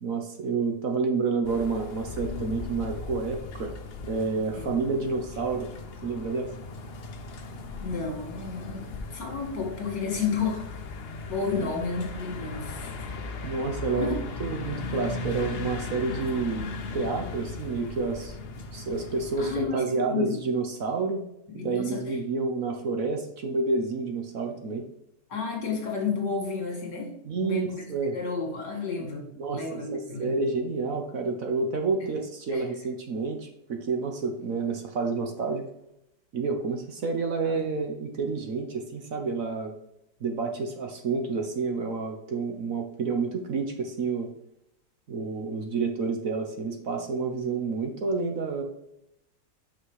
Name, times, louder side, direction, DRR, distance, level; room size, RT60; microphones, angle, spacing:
voice 1, 0.0-3.7 4.0-5.7 6.0-6.5 11.6-11.7 13.4-18.4 18.7-21.2 21.5-24.8 27.2-28.2 29.4-35.6 36.3-39.7 40.2-44.3 45.1-48.6, right 4 dB, 55° right, 4 dB, 1.3 m, -29 dB
sound 1, 1.4-19.6, left 3 dB, 50° left, 0.8 m, -37 dB
voice 2, 7.8-10.7 11.3-12.9 13.9-14.2 19.4-20.4 21.5-22.2 25.3-27.1 27.4-27.8 28.1-30.4 32.0-32.1 32.5-32.6 37.4-37.7, left 5 dB, 70° left, 1 dB, 2.6 m, -32 dB
6.0 x 5.8 x 4.8 m, 0.79 s
omnidirectional pair, 1.9 m